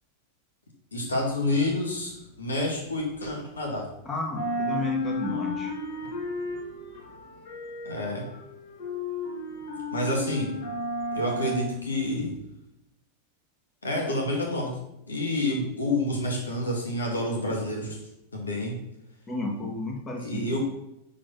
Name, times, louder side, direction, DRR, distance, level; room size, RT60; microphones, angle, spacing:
voice 1, 0.9-3.9 7.8-8.3 9.9-10.5 11.1-12.4 13.8-14.7 15.1-18.0 18.3-18.8 20.2-20.6, left 1 dB, 75° left, 1 dB, 2.2 m, -28 dB
sound 1, 1.1-3.9 4.2-12.4, left 1 dB, 50° left, 2.0 m, -34 dB
voice 2, 4.1-5.7 19.3-20.6, left 2 dB, 20° left, 0 dB, 2.3 m, -33 dB
11.0 x 4.5 x 5.6 m, 0.86 s
figure-of-eight pair, 90°, 0 cm